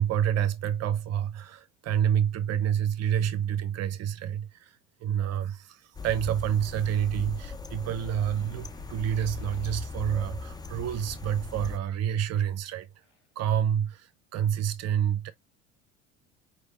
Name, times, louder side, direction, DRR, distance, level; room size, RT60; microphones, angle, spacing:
voice 1, 0.0-4.8 5.0-12.9 13.4-15.3, right 9 dB, 45° right, 0.8 m, -28 dB
sound 1, 5.9-11.8, left 4 dB, 10° left, 0.6 m, -39 dB
Motorcycle, 7.0-13.5, left 4 dB, 85° left, 2.6 m, -63 dB
4.8 x 3.4 x 2.5 m
hypercardioid pair, 70°, 36 cm